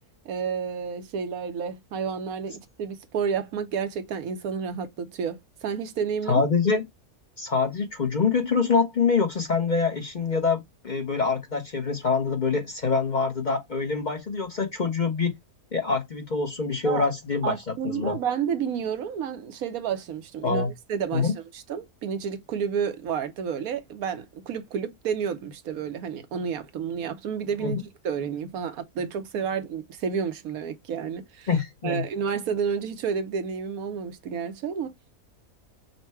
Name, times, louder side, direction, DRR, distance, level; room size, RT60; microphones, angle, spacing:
voice 1, 0.2-6.4 16.8-17.1 17.4-31.5 31.8-34.9, right 7 dB, 80° right, 1.2 m, -30 dB
voice 2, 6.3-6.8 7.4-15.3 15.7-18.2 20.4-20.7 21.1-21.3 27.6-27.7 31.5-32.0, left 4 dB, 40° left, 0.8 m, -25 dB
5.5 x 2.2 x 4.5 m
omnidirectional pair, 1.5 m